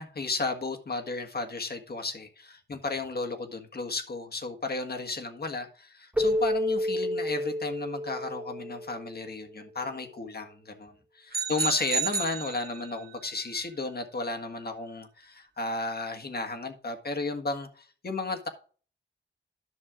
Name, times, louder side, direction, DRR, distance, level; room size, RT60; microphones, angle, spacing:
voice 1, 0.0-18.5, left 3 dB, 55° left, 1.6 m, -34 dB
Keyboard (musical), 6.2-9.4, left 1 dB, 5° right, 0.9 m, -30 dB
sound 1, 11.3-13.1, right 5 dB, 55° right, 1.4 m, -31 dB
11.0 x 6.4 x 3.7 m
wide cardioid pair, 80°, 19 cm